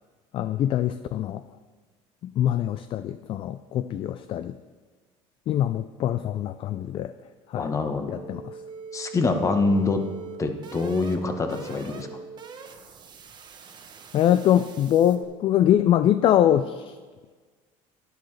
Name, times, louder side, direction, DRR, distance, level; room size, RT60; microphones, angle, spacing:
voice 1, 0.3-1.4 2.2-4.6 5.5-7.1 7.5-7.7 8.1-8.6 14.1-16.9, left 11 dB, 45° left, 12 dB, 0.4 m, -23 dB
voice 2, 7.6-8.1 8.9-10.0 10.4-12.1, left 3 dB, 25° left, 6 dB, 1.2 m, -25 dB
sound 1, 8.2-15.2, right 5 dB, 35° right, 1.2 m, -42 dB
11.5 x 10.5 x 3.3 m, 1.4 s
supercardioid pair, 110°, 13 cm